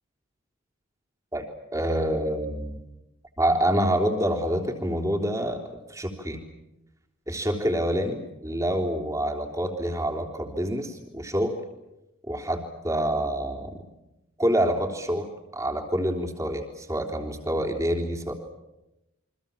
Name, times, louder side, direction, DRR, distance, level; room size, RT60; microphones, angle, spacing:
voice 1, 1.7-2.8 3.4-5.6 5.9-6.4 7.3-11.5 12.3-13.8 14.4-18.3, equal, 15° right, 3 dB, 3.5 m, -27 dB
29.0 x 24.5 x 7.3 m, 0.94 s
head